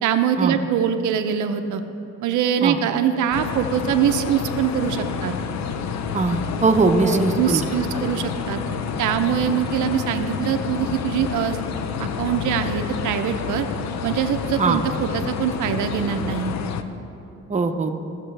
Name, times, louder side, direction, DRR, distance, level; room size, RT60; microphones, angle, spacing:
voice 1, 0.0-1.8 2.2-5.3 7.0-8.6 9.0-11.6 12.0-13.7 14.0-16.5, right 8 dB, 80° right, 8 dB, 0.6 m, -23 dB
sound 1, 3.3-16.8, left 7 dB, 65° left, 0.6 m, -29 dB
voice 2, 6.1-7.6 14.6-14.8 17.5-17.9, right 3 dB, 25° right, 5 dB, 0.7 m, -20 dB
16.0 x 6.6 x 3.3 m, 2.7 s
cardioid pair, 90°, 30 cm